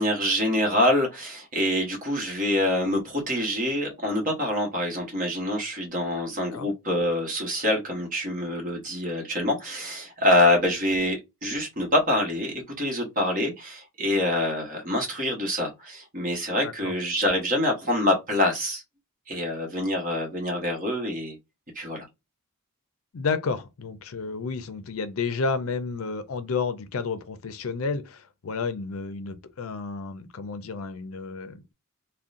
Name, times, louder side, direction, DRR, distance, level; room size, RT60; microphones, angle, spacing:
voice 1, 0.0-18.8 19.3-21.4 21.7-22.1, left 1 dB, 40° right, 1.1 m, -25 dB
voice 2, 16.6-16.9 23.1-31.7, left 4 dB, 70° left, 0.5 m, -31 dB
3.7 x 2.2 x 2.5 m
head